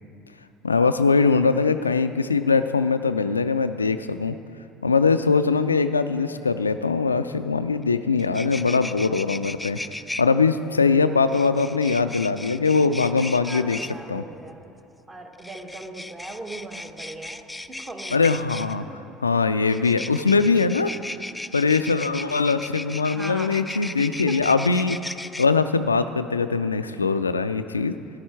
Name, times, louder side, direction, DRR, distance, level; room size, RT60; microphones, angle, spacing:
voice 1, 0.6-4.4 4.8-9.8 10.2-13.8 14.1-14.2 18.1-18.8 19.2-20.9 21.5-25.0 25.4-28.0, left 4 dB, 90° left, 11 dB, 0.3 m, -21 dB
sound 1, 7.8-7.9 8.2-10.2 11.3-13.9 15.3-18.7 19.7-25.5, left 1 dB, 10° left, 0.4 m, -36 dB
voice 2, 13.4-14.7 15.1-18.3 18.8-19.1 23.0-23.6 24.0-24.5, right 2 dB, 25° right, 4 dB, 1.6 m, -39 dB
13.5 x 10.5 x 4.5 m, 2.6 s
figure-of-eight pair, 60°, 0 cm